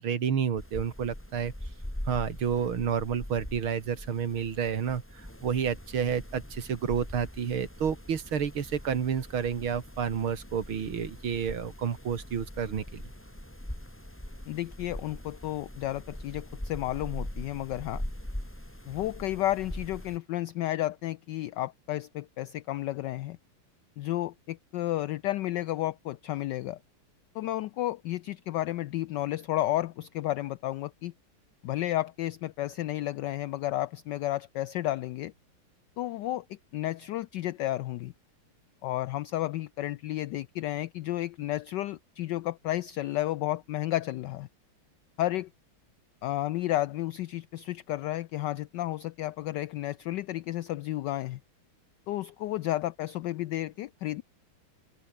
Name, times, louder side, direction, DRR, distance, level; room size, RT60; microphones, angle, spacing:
voice 1, 0.0-1.5 2.1-13.0, right 7 dB, 75° right, 2.8 m, -30 dB
sound 1, 0.6-20.2, left 1 dB, 5° left, 2.9 m, -42 dB
voice 2, 14.5-18.0 18.9-23.4 24.0-26.8 27.3-31.1 31.6-35.3 36.0-38.1 38.8-44.5 45.2-45.5 46.2-51.4 52.1-54.2, left 15 dB, 75° left, 1.0 m, -32 dB
omnidirectional pair, 2.3 m